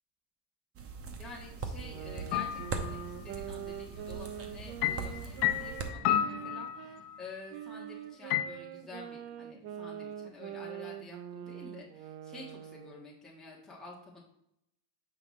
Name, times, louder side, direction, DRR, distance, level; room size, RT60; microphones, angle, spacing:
sound 1, 0.7-5.9, right 4 dB, 30° right, 0.9 m, -41 dB
voice 1, 1.2-14.2, left 2 dB, ahead, -5 dB, 1.4 m, -49 dB
sound 2, 1.8-7.0 7.5-13.1, right 10 dB, 70° right, 0.7 m, -44 dB
sound 3, 2.3-3.1 4.8-7.2 8.3-8.4, left 11 dB, 90° left, 0.8 m, -31 dB
8.1 x 5.6 x 3.1 m, 0.80 s
cardioid pair, 125°, 46 cm